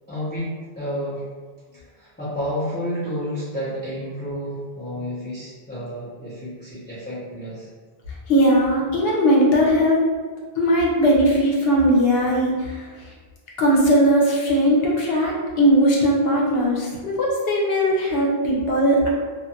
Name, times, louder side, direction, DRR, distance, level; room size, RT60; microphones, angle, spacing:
voice 1, 0.1-1.2 1.7-7.7, equal, 10° left, -12 dB, 0.7 m, -30 dB
voice 2, 8.3-10.0 10.6-12.8 13.6-19.1, equal, 75° left, -3 dB, 0.9 m, -19 dB
2.5 x 2.4 x 2.7 m, 1.5 s
omnidirectional pair, 1.0 m